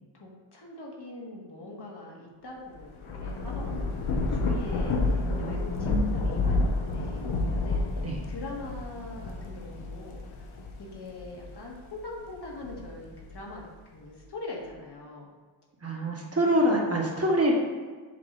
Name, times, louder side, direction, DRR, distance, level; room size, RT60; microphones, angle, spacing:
voice 1, 0.1-10.5 10.8-15.3 16.4-16.8, left 2 dB, 55° left, -2 dB, 1.7 m, -43 dB
Thunder / Rain, 2.8-11.7 12.2-13.5, left 2 dB, 80° left, 1.1 m, -30 dB
voice 2, 5.3-6.3 8.0-8.2 15.8-17.5, equal, 30° right, -1 dB, 1.3 m, -26 dB
7.5 x 4.9 x 3.9 m, 1.4 s
wide cardioid pair, 105°, 48 cm